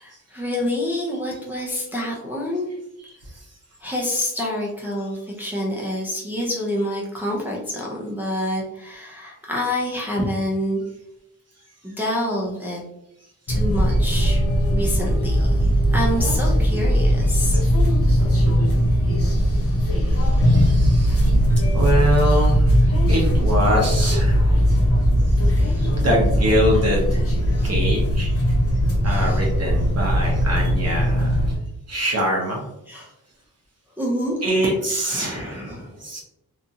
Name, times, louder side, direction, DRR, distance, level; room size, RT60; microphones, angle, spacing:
voice 1, 0.0-2.7 3.8-10.8 11.8-12.8 13.5-14.5 14.7-17.6 18.9-19.0 20.1-20.5 21.0-21.3 22.9-23.0 24.7-24.9 25.6-25.9 27.6-27.7 29.0-29.4 32.9-33.1 34.0-34.4 35.1-36.0, left 1 dB, 5° right, -4 dB, 0.5 m, -28 dB
sound 1, 13.5-31.6, equal, 40° left, 0.7 m, -19 dB
voice 2, 20.4-21.3 21.7-24.4 25.8-27.3 27.6-28.3 29.0-31.4 31.9-32.6 34.4-35.7 36.0-36.2, equal, 45° right, -2 dB, 0.7 m, -24 dB
2.7 x 2.4 x 2.6 m, 0.84 s
wide cardioid pair, 110°, 36 cm